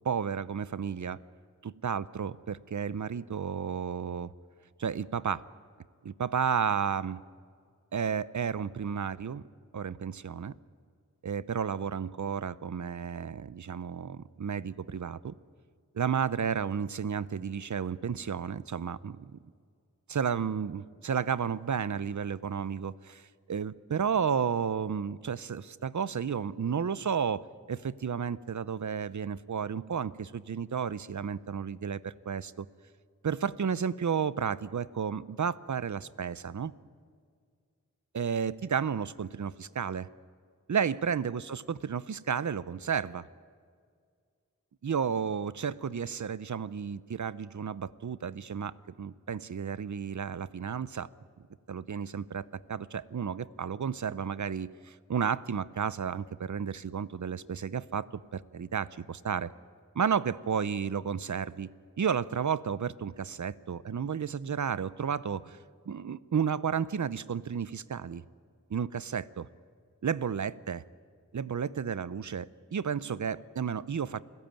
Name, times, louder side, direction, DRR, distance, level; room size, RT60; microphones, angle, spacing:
voice 1, 0.0-1.2 1.6-4.3 4.8-5.4 6.0-7.2 7.9-9.4 9.7-10.5 11.2-15.3 15.9-19.4 20.1-23.2 23.5-27.4 27.7-32.7 33.2-36.7 38.1-40.1 40.7-43.3 44.8-51.1 51.7-59.5 59.9-61.7 62.0-65.6 65.9-68.2 68.7-69.5 70.0-70.8 71.3-74.2, right 7 dB, 70° right, 18 dB, 0.7 m, -32 dB
28.5 x 16.5 x 9.0 m, 2.1 s
wide cardioid pair, 60°, 31 cm